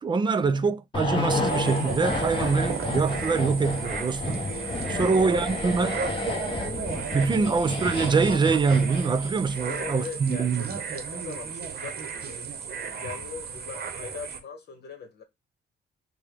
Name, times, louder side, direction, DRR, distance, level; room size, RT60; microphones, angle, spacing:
voice 1, 0.0-4.4 5.0-6.0 7.1-10.6, right 4 dB, 25° right, 0.4 m, -24 dB
sound 1, 0.9-9.5 9.7-9.9, left 2 dB, 25° left, 0.9 m, -31 dB
sound 2, 1.5-14.4, right 6 dB, 55° right, 0.9 m, -35 dB
voice 2, 4.8-5.6 7.3-7.5 9.5-15.2, left 5 dB, 60° left, 1.2 m, -41 dB
4.7 x 2.3 x 3.3 m
cardioid pair, 135°, 19 cm